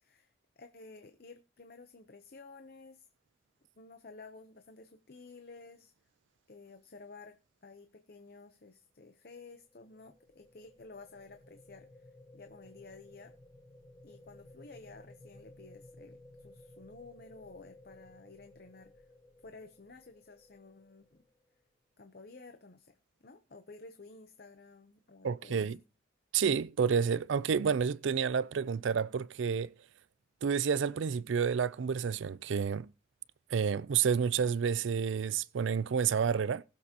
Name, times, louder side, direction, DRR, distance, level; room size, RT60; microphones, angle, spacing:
voice 1, 0.0-3.1 3.8-5.9 6.5-13.3 14.0-19.1 19.4-21.2 22.0-22.9 23.2-25.7, left 3 dB, 50° left, 0.8 m, -53 dB
sound 1, 9.4-21.6, left 1 dB, 20° left, 1.0 m, -57 dB
voice 2, 25.2-25.8 26.3-29.7 30.4-32.9 33.5-36.6, right 6 dB, 75° right, 0.4 m, -30 dB
20.5 x 7.3 x 2.9 m
head